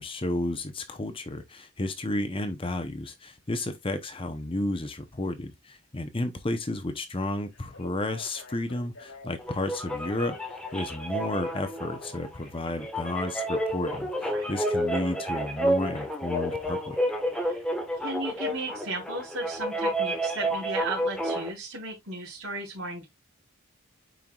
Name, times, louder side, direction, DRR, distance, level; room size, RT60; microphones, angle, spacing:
voice 1, 0.0-10.4 10.7-17.0, left 1 dB, 25° left, 0.7 m, -32 dB
Telephone, 7.5-17.1 18.7-18.8, left 2 dB, 75° left, 2.8 m, -48 dB
sound 1, 9.4-21.5, equal, 5° left, 1.3 m, -30 dB
voice 2, 18.0-23.1, right 2 dB, 75° right, 3.2 m, -35 dB
9.1 x 4.6 x 2.4 m
head